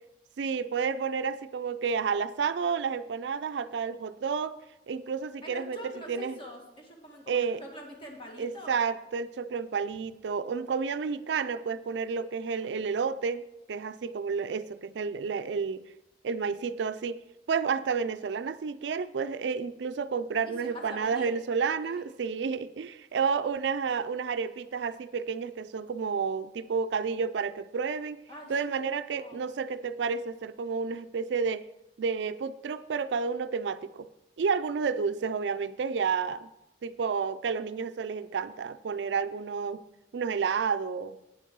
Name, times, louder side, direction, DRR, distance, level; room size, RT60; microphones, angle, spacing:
voice 1, 0.4-4.5 4.9-6.4 7.3-7.6 8.4-13.4 13.7-15.8 16.2-17.2 17.5-28.2 28.5-31.6 32.0-34.1 34.4-36.5 36.8-39.8 40.1-41.2, right 5 dB, 75° right, 13 dB, 0.4 m, -30 dB
voice 2, 5.4-8.8 12.6-12.8 20.4-21.3 21.8-22.0 28.3-29.4, equal, 30° left, 0 dB, 2.0 m, -45 dB
9.2 x 7.3 x 5.4 m, 0.93 s
head